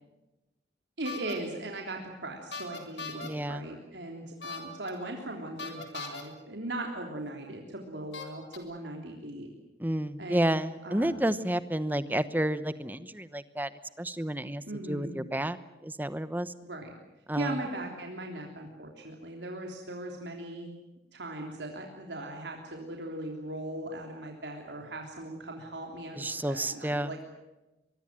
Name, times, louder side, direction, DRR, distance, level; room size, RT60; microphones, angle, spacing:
voice 1, 1.0-9.5 10.2-10.6 10.8-11.2 14.7-15.1 16.6-16.9 17.4-20.7 21.1-27.2, right 1 dB, 75° right, 1 dB, 3.4 m, -39 dB
sound 1, 1.1-1.3 2.5-3.3 4.4-4.9 5.6-6.2 7.3-7.4 8.1-8.6, left 4 dB, 70° left, 4.0 m, -39 dB
voice 2, 3.2-3.7 9.8-13.7 14.0-16.5 17.3-17.6 26.2-27.1, right 1 dB, 10° right, 13 dB, 1.0 m, -31 dB
24.0 x 22.5 x 7.6 m, 1.0 s
head